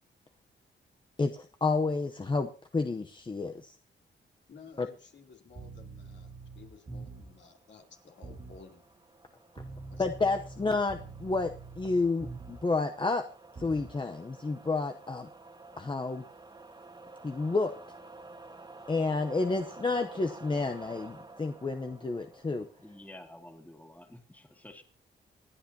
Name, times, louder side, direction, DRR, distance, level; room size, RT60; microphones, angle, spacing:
voice 1, 1.2-3.8 4.8-4.9 10.0-13.2 13.6-15.3 15.8-16.2 17.2-17.7 18.9-22.7, left 3 dB, 25° left, 5 dB, 0.8 m, -30 dB
voice 2, 4.5-6.3 6.5-8.8 9.9-10.5, left 5 dB, 65° left, 2 dB, 3.1 m, -54 dB
sound 1, 5.5-7.4 8.2-8.6 9.6-12.7 13.6-14.0, right 3 dB, 40° right, 2.2 m, -45 dB
sound 2, 6.8-23.3, right 3 dB, 20° right, 1.7 m, -52 dB
voice 3, 22.8-24.8, left 1 dB, 10° left, 4 dB, 2.4 m, -50 dB
27.5 x 9.4 x 2.8 m, 0.40 s
cardioid pair, 110°, 20 cm